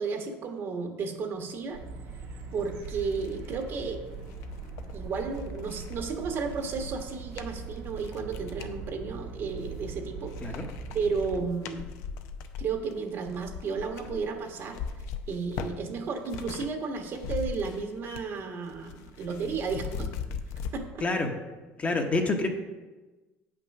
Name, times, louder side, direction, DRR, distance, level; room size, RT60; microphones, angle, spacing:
voice 1, 0.0-1.8 2.5-4.0 4.9-10.6 10.9-11.9 12.6-14.8 15.3-20.1 20.7-21.1, right 5 dB, 50° right, 4 dB, 1.4 m, -33 dB
sound 1, 1.7-11.4, right 4 dB, 80° right, 1.9 m, -41 dB
sound 2, 2.1-2.2 2.6-8.8 9.4-10.0 10.3-16.7 17.0-18.4 18.6-20.7, left 7 dB, 75° left, 0.7 m, -40 dB
voice 2, 21.0-21.4 21.8-22.5, left 3 dB, 25° left, 3 dB, 1.1 m, -27 dB
8.5 x 6.0 x 6.0 m, 1.2 s
cardioid pair, 115°, 5 cm